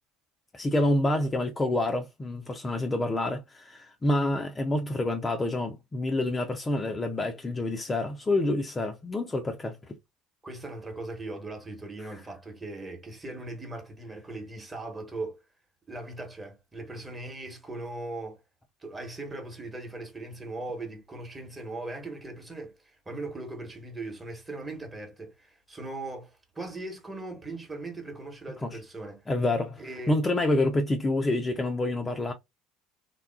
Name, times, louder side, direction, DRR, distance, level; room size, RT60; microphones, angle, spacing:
voice 1, 0.5-9.8 28.6-28.8 29.3-32.3, left 2 dB, 20° left, 0.5 m, -27 dB
voice 2, 10.4-15.4 15.9-18.4 18.8-29.2 29.8-30.2, right 2 dB, 15° right, 1.1 m, -39 dB
3.6 x 2.3 x 2.3 m
figure-of-eight pair, 65°, 0 cm